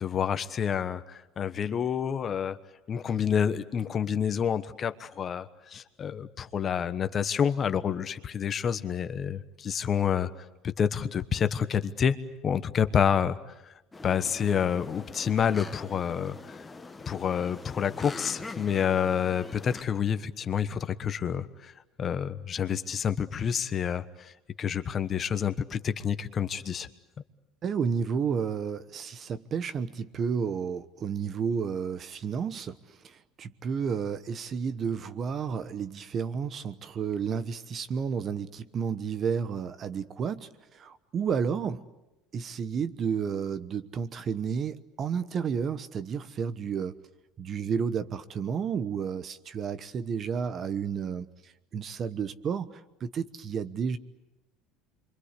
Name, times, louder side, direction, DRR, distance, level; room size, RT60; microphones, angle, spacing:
voice 1, 0.0-2.6 2.9-10.3 10.6-12.2 12.4-13.4 13.7-13.8 14.0-16.6 17.1-21.7 22.0-24.3 24.6-26.9, left 8 dB, 35° left, 12 dB, 1.2 m, -28 dB
sound 1, 13.9-19.8, left 3 dB, 15° left, 1.4 m, -43 dB
voice 2, 27.6-41.8 42.3-47.0 47.4-54.0, right 6 dB, 40° right, 13 dB, 1.1 m, -31 dB
26.5 x 24.0 x 8.4 m, 0.98 s
supercardioid pair, 100°, 0 cm